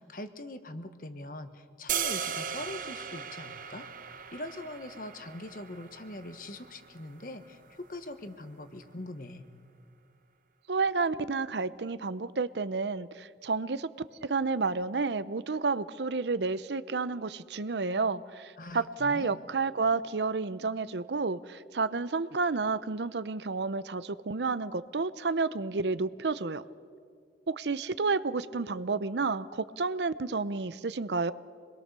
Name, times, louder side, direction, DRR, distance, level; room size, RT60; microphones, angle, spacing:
voice 1, 0.0-3.9 4.3-9.5 18.6-19.4, left 1 dB, 50° left, 9 dB, 1.3 m, -42 dB
sound 1, 1.9-8.0, right 8 dB, 50° right, 0.9 m, -38 dB
voice 2, 10.7-26.6 27.5-31.3, right 4 dB, 75° right, 15 dB, 0.7 m, -30 dB
26.5 x 21.5 x 6.8 m, 2.2 s
head